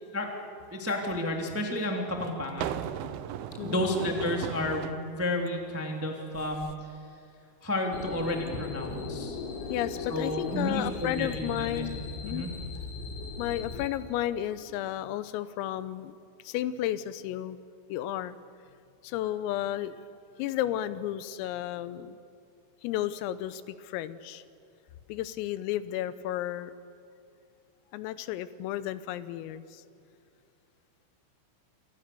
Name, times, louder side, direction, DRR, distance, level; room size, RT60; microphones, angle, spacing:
voice 1, 0.7-2.8 3.6-6.9 7.6-9.4 10.1-11.9 12.3-12.5, left 1 dB, 10° right, 1 dB, 0.7 m, -31 dB
sound 1, 1.1-1.2 2.2-5.0 6.3-6.7, right 11 dB, 80° right, 3.1 m, -37 dB
sound 2, 7.9-13.9, left 4 dB, 70° left, 5.4 m, -38 dB
voice 2, 9.7-12.5 13.4-16.2 16.4-17.6 17.9-18.4 19.0-20.0 20.4-22.2 22.8-24.4 25.1-26.7 27.9-29.8, left 12 dB, 85° left, 14 dB, 3.5 m, -33 dB
28.0 x 27.0 x 6.9 m, 2.5 s
omnidirectional pair, 6.0 m